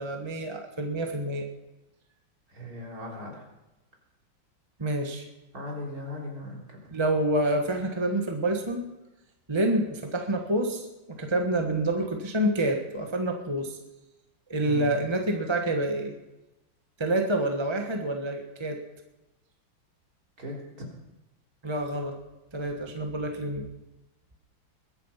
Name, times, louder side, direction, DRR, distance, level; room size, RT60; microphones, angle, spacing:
voice 1, 0.0-1.5 4.8-5.2 6.9-8.9 9.5-13.8 14.5-16.1 17.0-18.8 21.6-22.1 22.5-23.7, right 1 dB, 15° right, 3 dB, 1.0 m, -28 dB
voice 2, 2.5-3.5 5.5-6.8 14.6-14.9 20.4-20.6, left 1 dB, 45° right, -2 dB, 4.1 m, -38 dB
21.5 x 8.9 x 5.7 m, 1.0 s
omnidirectional pair, 2.2 m